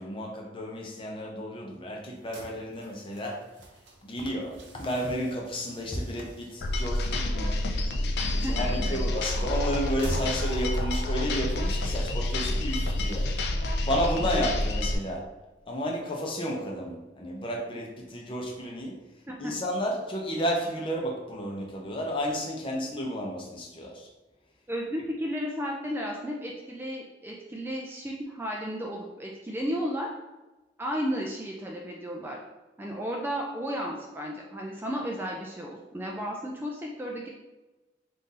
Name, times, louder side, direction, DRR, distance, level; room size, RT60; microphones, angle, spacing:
voice 1, 0.0-3.4 4.0-7.6 8.4-13.3 13.8-15.3 15.7-19.0 19.4-24.1, equal, 30° left, 0 dB, 0.7 m, -32 dB
sound 1, 2.1-15.2, right 1 dB, 85° right, 0.7 m, -48 dB
sound 2, 6.6-14.9, left 1 dB, 65° left, 0.4 m, -28 dB
voice 2, 8.4-9.0 14.2-14.4 19.3-19.5 24.7-30.1 30.8-32.4 32.8-37.3, equal, 10° right, -1 dB, 0.3 m, -33 dB
3.7 x 2.6 x 4.1 m, 1.1 s
head